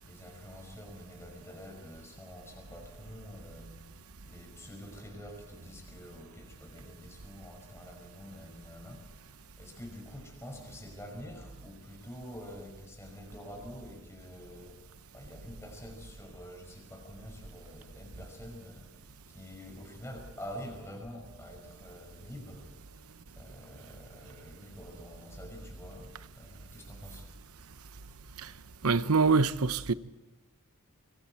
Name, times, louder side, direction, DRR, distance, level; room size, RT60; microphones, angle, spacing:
voice 1, 0.0-4.0 4.2-14.8 15.1-18.9 19.3-22.7 23.4-27.3, equal, 10° left, 5.7 m, -47 dB
voice 2, 28.8-29.9, right 4 dB, 80° right, 0.9 m, -25 dB
25.5 x 24.5 x 4.5 m
head